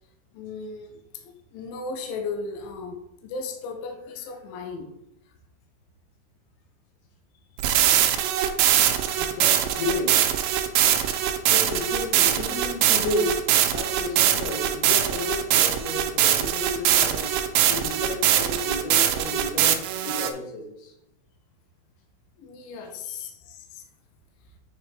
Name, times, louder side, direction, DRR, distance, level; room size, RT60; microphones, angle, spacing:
voice 1, 0.3-4.9 22.4-23.8, left 4 dB, 85° left, 4 dB, 2.1 m, -36 dB
sound 1, 7.6-20.3, right 11 dB, 80° right, 2.6 m, -22 dB
voice 2, 9.2-10.3 11.5-17.3 17.7-20.9, left 2 dB, 70° left, 1 dB, 2.8 m, -32 dB
7.3 x 5.5 x 3.3 m, 0.82 s
omnidirectional pair, 5.2 m